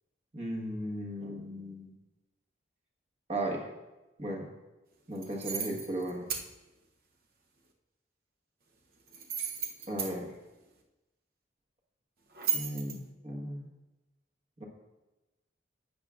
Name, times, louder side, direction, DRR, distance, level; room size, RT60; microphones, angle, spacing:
voice 1, 0.3-1.9 3.3-3.7 4.2-4.5 5.1-6.3 9.9-10.3 12.5-13.7 14.6-14.7, right 1 dB, 35° right, 0 dB, 1.4 m, -36 dB
sound 1, 5.2-6.5 9.1-10.1 12.3-13.0, right 7 dB, 50° right, 0.8 m, -34 dB
12.0 x 8.3 x 2.5 m, 1.1 s
head